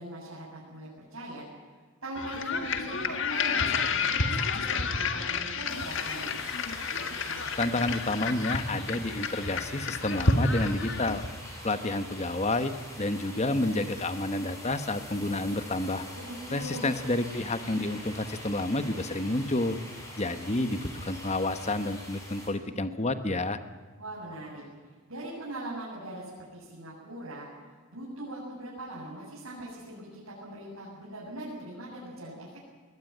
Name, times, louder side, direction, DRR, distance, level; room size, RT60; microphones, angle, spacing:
voice 1, 0.0-1.5 2.0-6.4 16.1-16.9 24.0-24.6 25.1-27.5 27.9-32.6, right 1 dB, 70° right, -7 dB, 8.0 m, -41 dB
sound 1, 2.2-11.5, left 4 dB, 55° left, 1.6 m, -30 dB
sound 2, 5.7-22.5, left 1 dB, 15° left, 6.5 m, -44 dB
voice 2, 7.6-11.2 11.6-12.7 13.0-16.0 16.5-19.8 20.2-23.6, left 2 dB, 30° left, 10 dB, 1.2 m, -29 dB
22.0 x 18.5 x 9.3 m, 1.5 s
head